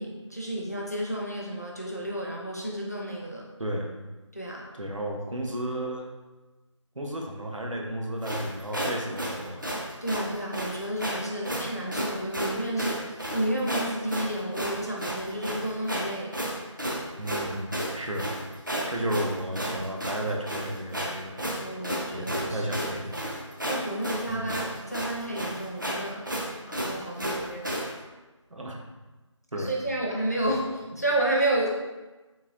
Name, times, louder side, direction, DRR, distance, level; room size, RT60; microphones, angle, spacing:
voice 1, 0.0-3.5 4.3-4.7 10.0-16.4 21.6-22.6 23.7-27.8 29.6-30.7 31.0-31.7, right 1 dB, 30° left, -2 dB, 0.4 m, -31 dB
voice 2, 4.7-6.1 6.9-9.6 17.2-18.3 18.9-21.4 22.1-23.2 24.3-24.7 28.5-28.8 29.5-29.7, right 1 dB, 75° right, 0 dB, 0.7 m, -33 dB
sound 1, 8.2-27.9, equal, 40° right, 0.4 m, -32 dB
3.8 x 2.6 x 2.7 m, 1.1 s
figure-of-eight pair, 170°, 16 cm